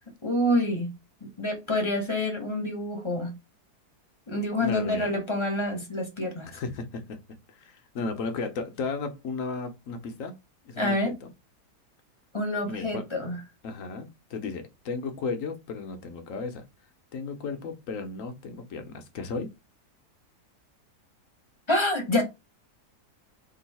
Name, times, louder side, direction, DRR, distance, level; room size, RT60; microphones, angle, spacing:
voice 1, 0.2-0.9 1.4-3.4 4.3-6.5 10.8-11.1 12.3-13.4 21.7-22.2, left 1 dB, 20° left, 0.9 m, -27 dB
voice 2, 4.6-5.1 6.4-7.2 7.5-10.3 10.6-11.3 12.7-13.1 13.6-16.6 17.1-19.5, left 4 dB, 60° left, 1.1 m, -34 dB
3.8 x 2.7 x 4.1 m
omnidirectional pair, 1.7 m